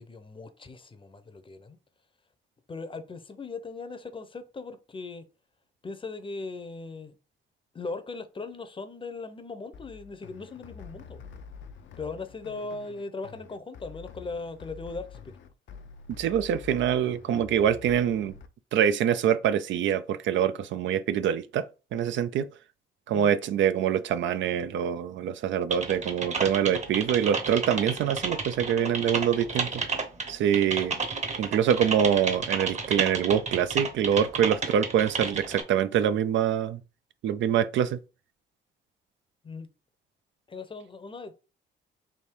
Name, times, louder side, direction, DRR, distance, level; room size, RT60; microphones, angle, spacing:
voice 1, 0.0-1.8 2.7-5.2 5.8-7.1 7.7-11.2 12.0-15.4 23.1-23.3 39.4-39.7 40.5-41.3, left 3 dB, 25° left, 0.7 m, -39 dB
sound 1, 9.7-18.5, left 6 dB, 70° left, 0.6 m, -47 dB
voice 2, 16.2-18.3 18.7-22.5 23.1-29.8 30.3-31.0 31.4-36.8 37.2-38.0, right 9 dB, 70° right, 0.5 m, -25 dB
Typing, 25.7-35.6, right 4 dB, 35° right, 1.0 m, -31 dB
3.5 x 2.7 x 4.5 m
cardioid pair, 90°, 20 cm